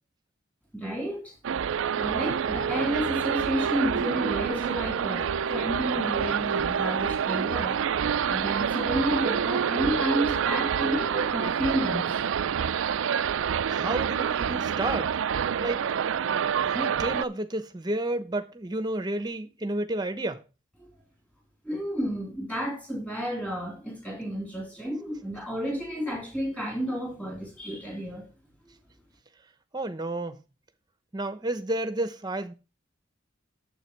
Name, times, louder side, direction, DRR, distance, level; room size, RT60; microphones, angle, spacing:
voice 1, 0.7-1.3 1.9-7.8 8.1-12.1 21.7-28.3, equal, 5° left, 3.5 m, -31 dB
sound 1, 1.4-17.2, right 7 dB, 80° right, 0.4 m, -27 dB
voice 2, 13.7-15.1 15.6-15.9 16.6-20.4 29.7-30.4 31.1-32.5, right 1 dB, 20° right, 0.9 m, -31 dB
9.1 x 7.5 x 4.6 m
head